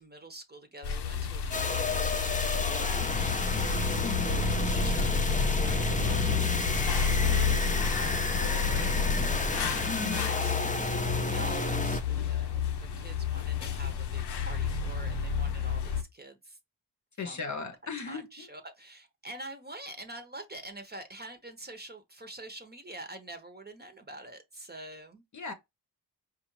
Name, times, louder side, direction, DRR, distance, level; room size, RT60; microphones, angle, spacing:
voice 1, 0.0-3.8 4.2-4.4 4.7-7.1 7.7-16.6 17.2-17.5 18.1-25.2, right 2 dB, 25° right, 0.9 m, -46 dB
sound 1, 0.8-16.0, left 6 dB, 75° left, 0.7 m, -30 dB
sound 2, 1.5-12.0, left 2 dB, 20° left, 0.7 m, -31 dB
sound 3, 5.7-9.6, right 11 dB, 55° right, 1.0 m, -49 dB
voice 2, 9.9-10.2 17.2-18.5 25.3-25.5, left 4 dB, 45° left, 0.8 m, -37 dB
4.9 x 2.4 x 3.1 m
cardioid pair, 50°, 40 cm